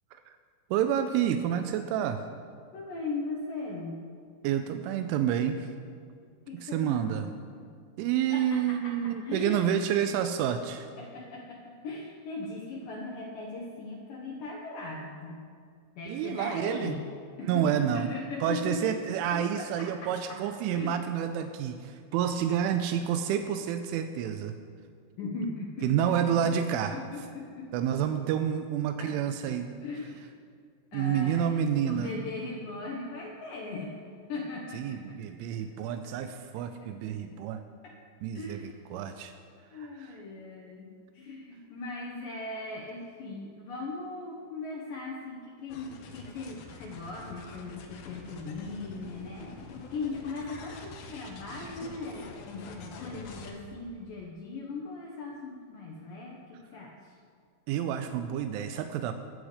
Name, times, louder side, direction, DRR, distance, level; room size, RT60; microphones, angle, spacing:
voice 1, 0.7-2.2 4.4-5.8 6.5-7.3 8.0-10.9 16.1-16.9 17.4-18.1 18.4-24.6 25.8-27.0 27.7-29.7 30.9-32.1 34.7-37.6 38.2-39.3 39.7-40.1 57.7-59.2, right 9 dB, 85° right, 7 dB, 3.1 m, -29 dB
voice 2, 2.7-4.0 6.5-7.6 8.3-9.6 11.0-15.4 15.9-17.0 17.4-19.0 19.3-20.4 20.7-21.0 25.2-27.9 29.0-29.1 29.8-30.3 30.9-34.0 34.3-35.6 36.3-36.4 36.8-36.9 37.8-38.0 38.3-38.7 39.7-49.5 49.9-57.2, left 3 dB, 85° left, -1 dB, 1.9 m, -39 dB
sound 1, 45.7-53.5, left 4 dB, 70° left, 2.5 m, -46 dB
21.5 x 8.2 x 5.0 m, 2.1 s
omnidirectional pair, 5.6 m